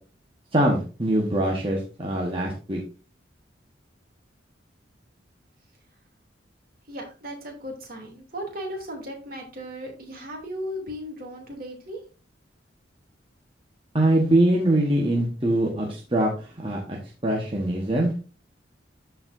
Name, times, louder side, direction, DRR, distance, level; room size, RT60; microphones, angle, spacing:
voice 1, 0.5-2.8 13.9-17.0 17.2-18.2, right 1 dB, 30° right, -1 dB, 1.2 m, -23 dB
voice 2, 6.9-12.0, equal, 50° right, 1 dB, 2.7 m, -36 dB
13.0 x 4.6 x 2.6 m, 0.35 s
head